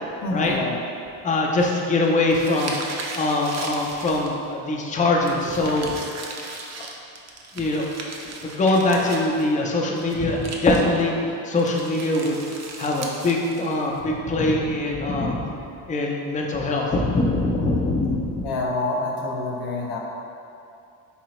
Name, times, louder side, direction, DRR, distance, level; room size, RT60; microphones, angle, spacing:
voice 1, 0.2-0.8 17.6-17.9 18.4-20.0, left 3 dB, 90° left, -1 dB, 0.6 m, -27 dB
voice 2, 1.2-2.8 3.1-5.9 7.5-7.9 8.3-12.5 12.8-15.4 15.9-18.5, left 2 dB, 20° left, -1 dB, 0.5 m, -23 dB
sound 1, 1.6-4.5 5.2-9.6 9.8-11.0 11.6-14.0, right 3 dB, 40° right, 0.5 m, -37 dB
4.0 x 2.7 x 3.0 m, 2.6 s
supercardioid pair, 70°, 41 cm